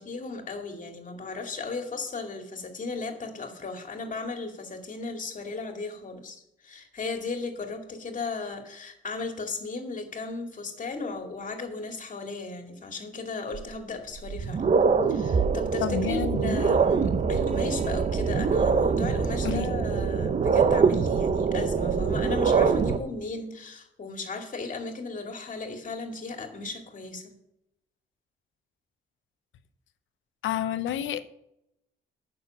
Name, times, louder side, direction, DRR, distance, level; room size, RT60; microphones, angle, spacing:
voice 1, 0.0-14.6 15.1-27.4, left 3 dB, 40° left, 4 dB, 2.4 m, -36 dB
sound 1, 13.5-13.6 14.2-23.0, right 5 dB, 35° right, 0.9 m, -24 dB
voice 2, 15.8-16.6 19.4-19.7 30.4-31.2, left 9 dB, 75° left, 11 dB, 0.9 m, -29 dB
9.7 x 6.7 x 7.4 m, 0.81 s
cardioid pair, 90°, 20 cm